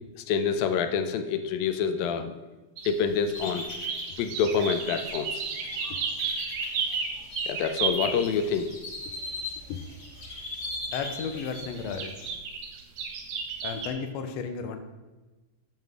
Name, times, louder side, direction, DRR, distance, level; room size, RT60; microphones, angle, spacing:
voice 1, 0.2-2.4 2.8-3.7 4.2-5.5 7.5-8.7 9.7-9.8, left 6 dB, 85° left, 9 dB, 2.5 m, -27 dB
sound 1, 2.8-8.7 9.2-9.3 9.6-9.7 10.0-10.1 11.5-13.9, right 5 dB, 80° right, 2.9 m, -33 dB
sound 2, 3.3-12.3, left 2 dB, 40° left, 1.0 m, -40 dB
voice 2, 10.9-12.1 13.6-14.8, left 5 dB, 65° left, 6 dB, 1.7 m, -33 dB
13.5 x 7.6 x 3.7 m, 1.2 s
omnidirectional pair, 4.0 m